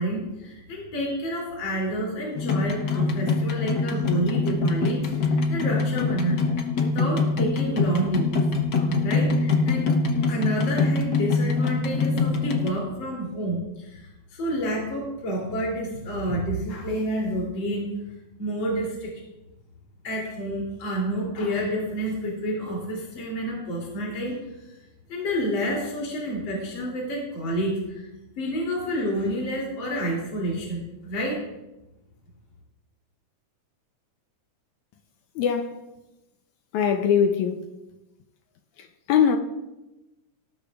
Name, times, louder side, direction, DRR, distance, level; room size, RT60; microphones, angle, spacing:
voice 1, 0.0-6.4 6.8-8.3 8.7-9.9 10.3-17.9 18.4-19.1 20.0-24.8 25.1-28.0 28.4-31.4, right 1 dB, 40° left, 3.7 m, -29 dB
sound 1, 2.3-12.7, left 4 dB, 60° left, 1.1 m, -24 dB
voice 2, 35.4-35.7 36.7-37.7 38.8-39.4, left 7 dB, 80° left, 2.1 m, -22 dB
18.5 x 14.0 x 2.5 m
omnidirectional pair, 3.4 m